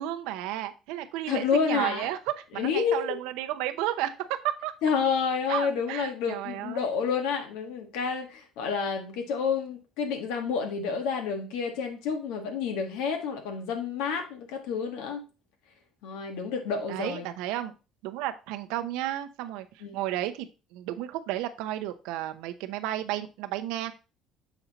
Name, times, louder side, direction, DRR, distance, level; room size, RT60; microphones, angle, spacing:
voice 1, 0.0-4.7 5.5-6.9 16.9-17.7 18.0-23.9, right 13 dB, 85° right, 0.8 m, -33 dB
voice 2, 1.3-2.1 2.5-3.2 4.8-15.2 16.0-17.3 19.8-20.0, left 6 dB, 90° left, 1.5 m, -29 dB
7.1 x 4.4 x 4.0 m
cardioid pair, 125°, 0 cm